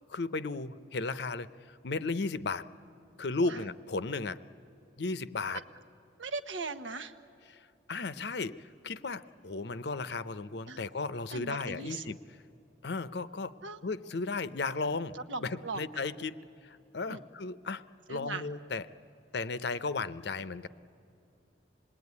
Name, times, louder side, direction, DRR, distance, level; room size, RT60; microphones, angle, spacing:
voice 1, 0.1-2.7 3.2-4.4 5.0-5.6 7.5-7.6 7.9-12.2 12.8-18.9 19.3-20.7, left 3 dB, 65° left, 15 dB, 0.7 m, -35 dB
voice 2, 6.2-7.1 10.7-10.8 11.3-12.1 13.6-13.8 15.1-15.9 17.1-17.2 18.1-18.5, right 3 dB, 85° right, 9 dB, 1.2 m, -38 dB
26.5 x 20.5 x 9.6 m, 2.8 s
head